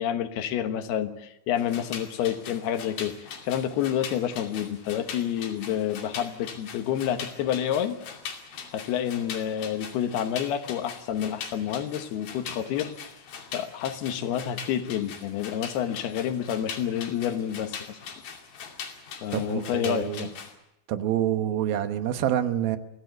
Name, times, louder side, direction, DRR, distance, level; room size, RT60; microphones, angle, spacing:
voice 1, 0.0-3.1 3.4-8.0 8.7-12.9 13.5-18.0 19.2-20.3, left 10 dB, 90° left, 3.3 m, -29 dB
sound 1, 1.6-20.5, left 6 dB, 70° left, 4.4 m, -41 dB
voice 2, 19.3-20.3 20.9-22.8, right 11 dB, 75° right, 2.8 m, -27 dB
24.5 x 16.0 x 8.2 m
omnidirectional pair, 4.4 m